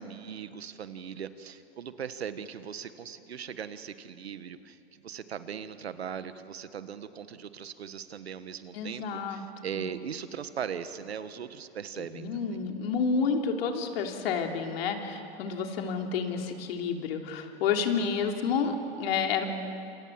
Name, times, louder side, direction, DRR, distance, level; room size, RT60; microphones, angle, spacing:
voice 1, 0.0-4.8 5.0-12.6, right 7 dB, 90° right, 11 dB, 1.6 m, -39 dB
voice 2, 8.7-9.4 9.7-9.9 12.0-19.5, left 5 dB, 70° left, 3 dB, 3.5 m, -30 dB
28.0 x 27.0 x 7.6 m, 2.9 s
hypercardioid pair, 100°, 31 cm